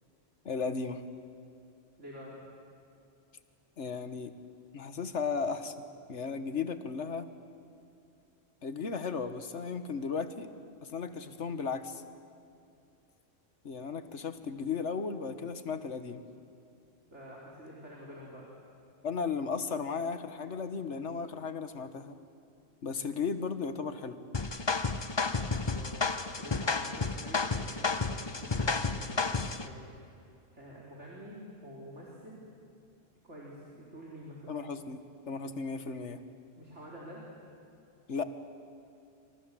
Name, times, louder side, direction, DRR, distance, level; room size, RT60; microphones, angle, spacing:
voice 1, 0.4-1.0 3.8-4.3 4.7-5.7 6.1-7.3 8.6-10.5 10.8-12.0 13.6-16.2 19.0-22.2 22.8-24.2 34.5-35.0 35.3-36.2 38.1-38.2, left 5 dB, 65° left, 10 dB, 1.6 m, -35 dB
voice 2, 2.0-2.3 17.1-18.5 25.3-25.9 26.4-29.9 30.5-32.4 33.2-34.6 36.6-37.2, equal, 65° right, -4 dB, 4.3 m, -48 dB
sound 1, 24.3-29.7, left 4 dB, 25° left, 0.7 m, -31 dB
28.0 x 26.0 x 7.6 m, 2.5 s
omnidirectional pair, 1.3 m